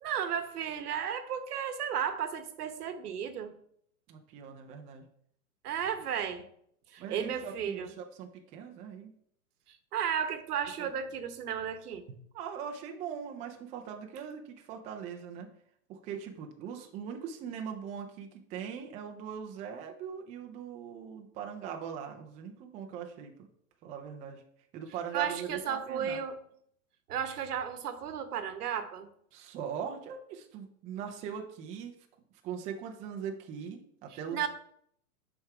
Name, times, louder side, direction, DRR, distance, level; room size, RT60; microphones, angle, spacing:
voice 1, 0.0-3.6 5.6-6.5 6.9-7.9 9.7-12.2 25.1-26.4 27.1-29.1 34.3-34.5, right 8 dB, 75° right, 1.0 m, -34 dB
voice 2, 4.1-5.1 7.0-9.1 10.8-10.9 12.3-15.5 15.9-23.3 23.8-24.4 24.7-26.2 29.3-32.0 32.4-34.4, right 7 dB, 15° right, 0.4 m, -41 dB
6.5 x 3.5 x 4.7 m
hypercardioid pair, 120°, 47 cm